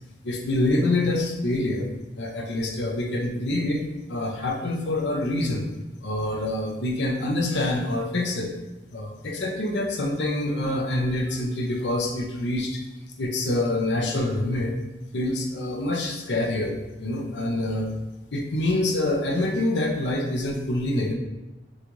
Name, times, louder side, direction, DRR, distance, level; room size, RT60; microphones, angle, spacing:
voice 1, 0.2-1.9 2.1-3.8 4.1-5.7 6.0-8.5 8.9-12.8 13.2-14.7 15.1-17.9 18.3-21.1, left 1 dB, 85° left, 1 dB, 0.7 m, -26 dB
6.6 x 2.4 x 3.0 m, 1.0 s
head